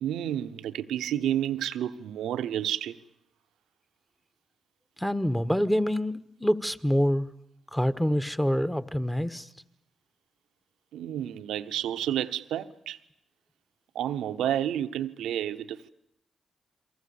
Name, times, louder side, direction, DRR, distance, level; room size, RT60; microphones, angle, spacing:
voice 1, 0.0-3.0 10.9-13.0 13.9-15.9, right 11 dB, 90° right, 0.9 m, -30 dB
voice 2, 5.0-7.3 7.7-9.5, equal, 5° left, 1.5 m, -26 dB
28.0 x 23.5 x 7.2 m
supercardioid pair, 50°, 0 cm